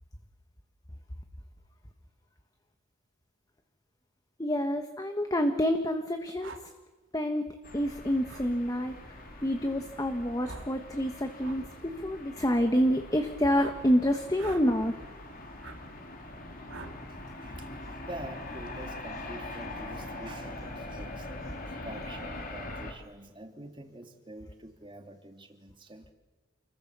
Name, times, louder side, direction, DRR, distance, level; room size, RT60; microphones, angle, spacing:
voice 1, 4.4-6.6 7.1-15.0, equal, 20° left, 6 dB, 1.4 m, -28 dB
sound 1, 6.4-6.6 8.3-8.5 10.4-10.7 11.4-11.6 13.5-13.8 14.3-14.7 15.6-15.8 16.7-17.0, right 3 dB, 65° right, 2.4 m, -44 dB
sound 2, 7.6-22.9, left 2 dB, 45° left, 3.4 m, -43 dB
voice 2, 17.1-26.1, right 1 dB, 25° right, 5 dB, 2.4 m, -46 dB
29.0 x 22.0 x 6.9 m, 1.2 s
head